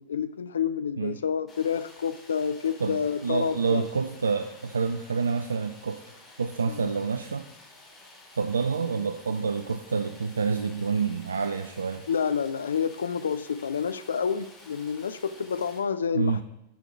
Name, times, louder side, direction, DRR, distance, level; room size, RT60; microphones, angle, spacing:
voice 1, 0.0-3.9 6.7-6.9 12.1-16.4, left 7 dB, 70° left, 14 dB, 0.4 m, -29 dB
Stream, 1.5-15.8, left 2 dB, 25° left, 2.6 m, -52 dB
voice 2, 2.8-6.0 6.4-7.4 8.4-12.0 16.1-16.4, right 5 dB, 75° right, 6 dB, 0.4 m, -28 dB
9.2 x 5.4 x 4.5 m, 0.90 s
figure-of-eight pair, 90°, 0 cm